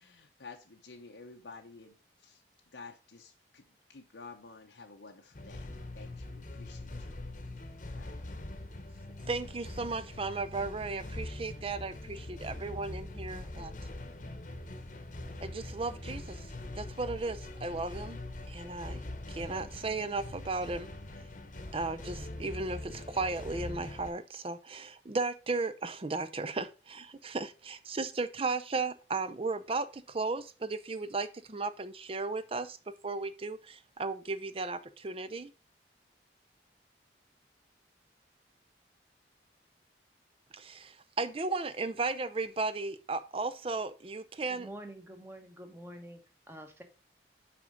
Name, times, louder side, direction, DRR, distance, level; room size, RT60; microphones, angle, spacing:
voice 1, 0.0-2.4 2.7-3.6 3.9-7.2 7.9-8.2, left 4 dB, 80° left, 0.9 m, -51 dB
sound 1, 5.3-24.1, left 2 dB, 45° left, 1.0 m, -43 dB
voice 2, 9.3-13.8 15.4-16.5 16.8-18.2 18.5-19.0 19.3-20.9 21.7-32.8 33.0-35.5 40.5-44.7, right 3 dB, 30° right, 0.5 m, -35 dB
voice 3, 44.5-46.2 46.5-46.8, right 1 dB, 15° right, 1.1 m, -47 dB
5.9 x 5.1 x 5.1 m
head